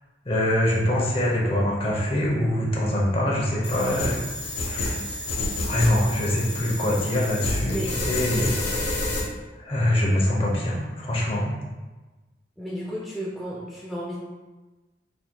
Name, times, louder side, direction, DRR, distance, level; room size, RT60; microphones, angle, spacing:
voice 1, 0.2-4.2 4.6-5.0 5.7-9.1 9.6-11.6, left 1 dB, 30° left, -3 dB, 0.7 m, -24 dB
sound 1, 3.6-9.2, left 2 dB, 70° left, 0.9 m, -29 dB
voice 2, 12.6-14.2, equal, ahead, -6 dB, 0.3 m, -33 dB
4.3 x 3.6 x 2.2 m, 1.2 s
head